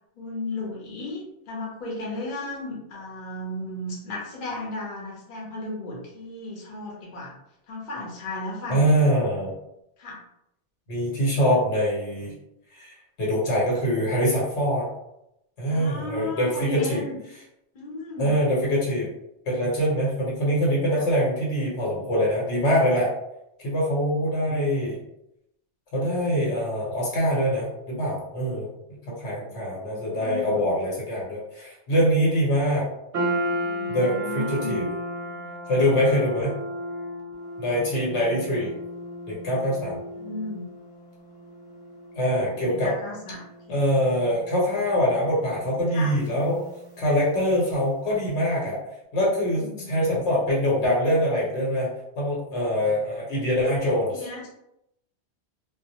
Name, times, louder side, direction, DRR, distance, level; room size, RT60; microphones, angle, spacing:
voice 1, 0.2-7.3 7.7-9.1 10.0-10.2 15.6-17.2 17.7-18.4 20.9-21.0 29.5-30.6 33.7-34.9 39.8-40.7 42.5-43.8 45.9-46.1 49.6-50.2 54.1-54.5, left 2 dB, 50° left, -4 dB, 0.8 m, -35 dB
voice 2, 8.7-9.5 10.9-12.3 12.7-14.9 15.6-17.0 18.2-19.1 19.5-23.1 23.6-25.0 25.9-28.7 29.1-32.9 33.9-34.9 35.7-36.5 37.6-38.7 39.3-40.0 42.1-42.9 43.7-46.6 47.0-48.8 49.1-51.9 52.2-54.2, equal, 80° left, -4 dB, 1.2 m, -24 dB
sound 1, 33.1-47.6, equal, 40° right, 0.6 m, -35 dB
2.2 x 2.1 x 2.8 m, 0.82 s
omnidirectional pair, 1.1 m